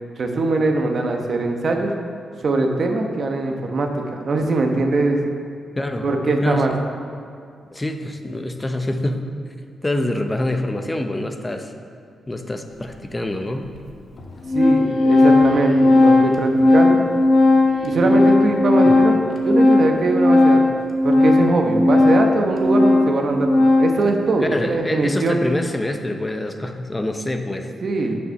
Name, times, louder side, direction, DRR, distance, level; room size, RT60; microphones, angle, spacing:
voice 1, 0.2-1.9 2.4-5.2 6.0-6.7 14.5-17.0 17.8-20.8 21.0-25.4 27.8-28.2, right 2 dB, 60° right, 3 dB, 1.1 m, -21 dB
voice 2, 5.8-6.1 6.4-6.8 7.7-9.3 9.8-11.7 12.3-13.7 18.9-19.0 24.5-27.7, left 1 dB, 20° left, 6 dB, 0.8 m, -26 dB
Organ, 12.8-12.9 13.7-13.8 14.2-24.1, left 2 dB, 60° left, 1.2 m, -16 dB
sound 1, 14.2-17.2 17.7-18.6, equal, 90° left, 1.3 m, -41 dB
6.8 x 6.8 x 5.6 m, 2.4 s
supercardioid pair, 55°, 0 cm